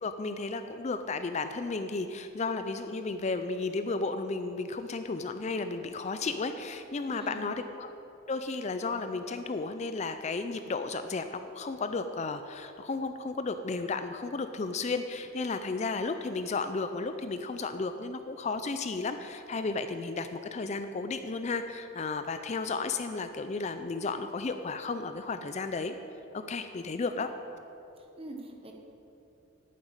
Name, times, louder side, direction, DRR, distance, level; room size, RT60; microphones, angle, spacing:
voice 1, 0.0-7.9 8.3-26.0 26.3-27.3, left 3 dB, 35° left, 9 dB, 0.4 m, -33 dB
voice 2, 7.1-7.5 28.0-28.7, right 2 dB, 25° right, 2 dB, 1.1 m, -43 dB
9.0 x 7.5 x 8.8 m, 2.9 s
head